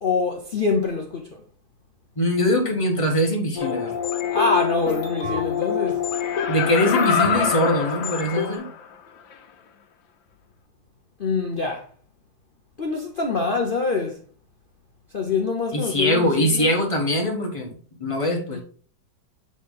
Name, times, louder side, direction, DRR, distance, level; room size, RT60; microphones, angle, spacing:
voice 1, 0.0-1.4 4.3-6.0 11.2-11.8 12.8-14.2 15.1-16.7 18.5-18.6, left 4 dB, 70° left, 0.5 m, -25 dB
voice 2, 2.2-3.9 6.5-8.7 15.7-17.7 18.0-18.6, equal, 25° left, 0.9 m, -22 dB
sound 1, 3.6-8.6, left 8 dB, 50° left, 1.3 m, -27 dB
Laughter, 6.2-8.8 9.3-9.4, left 7 dB, 90° left, 1.5 m, -25 dB
6.9 x 3.8 x 3.9 m
omnidirectional pair, 2.1 m